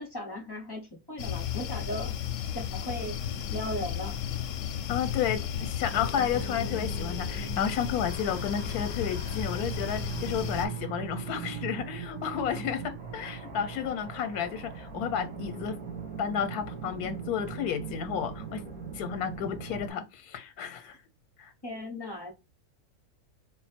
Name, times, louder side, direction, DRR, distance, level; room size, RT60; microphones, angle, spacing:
voice 1, 0.0-2.1 2.5-3.2 3.5-4.2 21.6-22.3, left 1 dB, 25° left, 0.5 m, -37 dB
sound 1, 1.2-10.7, left 9 dB, 70° left, 0.8 m, -34 dB
voice 2, 4.9-15.8 16.2-18.6 18.9-21.0 21.4-21.5, left 8 dB, 90° left, 1.1 m, -32 dB
sound 2, 5.9-19.9, right 6 dB, 70° right, 1.9 m, -40 dB
4.1 x 2.0 x 4.2 m
omnidirectional pair, 1.6 m